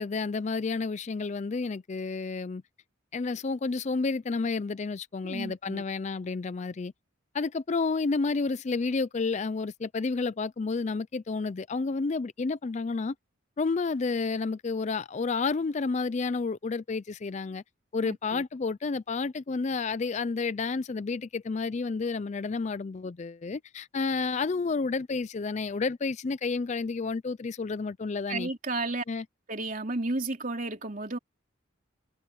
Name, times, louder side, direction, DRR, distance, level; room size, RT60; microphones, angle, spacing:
voice 1, 0.0-2.6 3.1-6.9 7.3-13.1 13.6-17.6 17.9-28.5 29.1-29.2, left 4 dB, 35° left, 0.4 m, -30 dB
voice 2, 5.2-5.8 18.0-18.4 28.3-29.0 29.5-31.2, right 2 dB, 40° right, 3.3 m, -33 dB
head